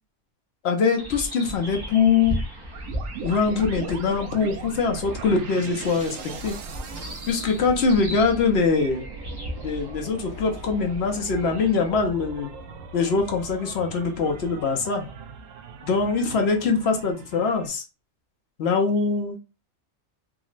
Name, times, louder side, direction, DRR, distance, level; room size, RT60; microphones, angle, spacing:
voice 1, 0.6-2.4 3.2-6.6 7.3-9.0 9.6-12.5 12.9-15.1 15.8-17.8 18.6-19.4, left 5 dB, 60° left, 3 dB, 0.9 m, -23 dB
sound 1, 1.0-11.9, equal, 25° right, 0.6 m, -37 dB
sound 2, 2.7-17.7, right 4 dB, 85° right, 1.0 m, -39 dB
3.7 x 2.0 x 2.4 m, 0.29 s
omnidirectional pair, 1.3 m